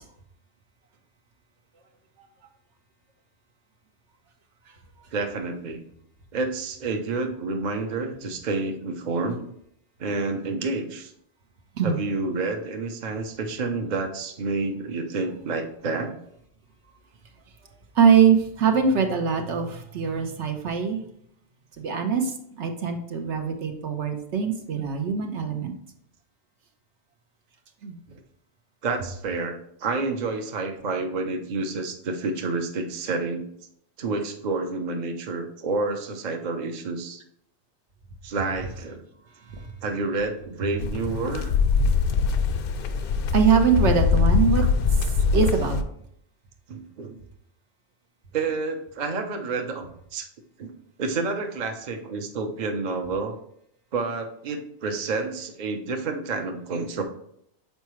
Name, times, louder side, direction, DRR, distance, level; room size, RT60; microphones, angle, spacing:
voice 1, 5.1-5.8 6.3-9.5 10.0-11.1 11.8-16.1 28.1-28.2 28.8-33.4 34.0-37.2 38.2-39.0 39.8-41.5 44.6-44.7 45.3-45.5 46.7-47.2 48.3-50.3 50.6-50.7 51.0-53.3 53.9-57.0, right 3 dB, 45° right, 5 dB, 0.8 m, -29 dB
voice 2, 18.0-21.0 21.8-22.2 22.6-25.7 27.8-28.0 43.3-44.6 45.3-45.8, right 6 dB, 75° right, 4 dB, 1.2 m, -22 dB
sound 1, 40.8-45.8, left 5 dB, 60° left, 0.6 m, -23 dB
6.7 x 4.6 x 3.1 m, 0.71 s
omnidirectional pair, 1.2 m